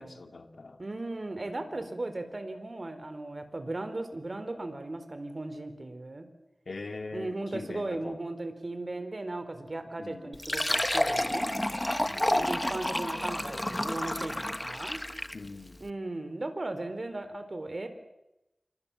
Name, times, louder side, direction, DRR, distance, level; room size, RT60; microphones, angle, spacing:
voice 1, 0.0-0.8 1.7-1.9 6.7-8.2 10.0-10.4 12.0-12.4 15.3-15.8, left 3 dB, 85° left, 6 dB, 2.7 m, -42 dB
voice 2, 0.8-6.3 7.1-11.5 12.4-15.0 15.8-17.9, right 2 dB, 55° right, 9 dB, 4.2 m, -37 dB
Fill (with liquid), 10.3-15.5, left 1 dB, 20° left, 1.0 m, -30 dB
29.0 x 25.0 x 7.2 m, 0.90 s
wide cardioid pair, 55°, 0 cm